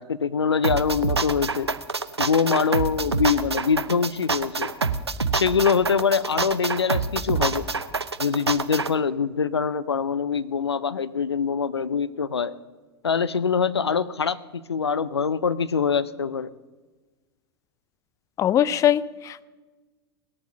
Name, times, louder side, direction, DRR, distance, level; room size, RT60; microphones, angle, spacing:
voice 1, 0.0-1.7 2.2-4.7 5.3-7.7 8.2-12.5 13.0-16.5, left 6 dB, 80° left, 17 dB, 0.5 m, -24 dB
sound 1, 0.6-8.9, right 4 dB, 85° right, 0.6 m, -26 dB
voice 2, 18.4-19.5, left 11 dB, 25° left, 19 dB, 0.4 m, -21 dB
18.5 x 8.5 x 6.7 m, 1.3 s
figure-of-eight pair, 90°, 13 cm